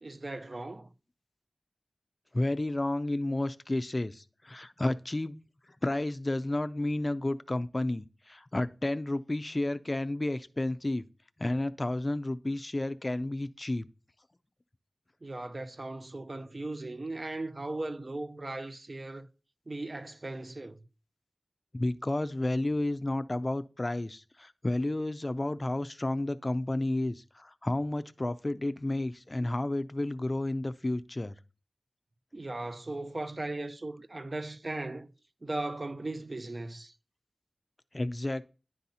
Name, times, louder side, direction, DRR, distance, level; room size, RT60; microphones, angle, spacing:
voice 1, 0.0-0.9 15.2-19.3 19.7-20.8 32.3-35.1 35.4-36.9, right 2 dB, 45° right, 0.5 m, -37 dB
voice 2, 2.3-5.4 5.8-11.0 11.4-13.9 21.7-31.3 37.9-38.5, left 1 dB, 35° left, 0.4 m, -31 dB
10.5 x 4.0 x 2.8 m
wide cardioid pair, 50°, 0 cm